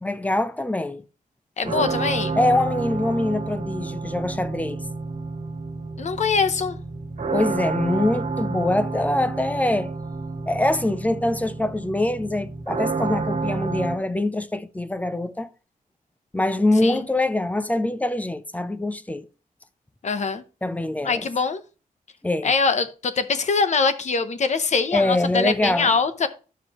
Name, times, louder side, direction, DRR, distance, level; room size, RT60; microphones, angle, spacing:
voice 1, 0.0-1.0 1.6-1.7 2.4-4.8 7.3-9.9 10.5-15.5 16.3-19.2 20.6-21.2 22.2-22.5 24.9-25.9, left 1 dB, 10° left, 0.5 m, -24 dB
voice 2, 1.6-2.4 6.0-6.8 16.8-17.0 20.0-20.4 21.0-21.6 22.4-26.3, left 4 dB, 55° left, 0.8 m, -23 dB
sound 1, 1.6-14.0, right 3 dB, 60° right, 1.9 m, -29 dB
11.0 x 7.1 x 3.0 m
wide cardioid pair, 165°, 15 cm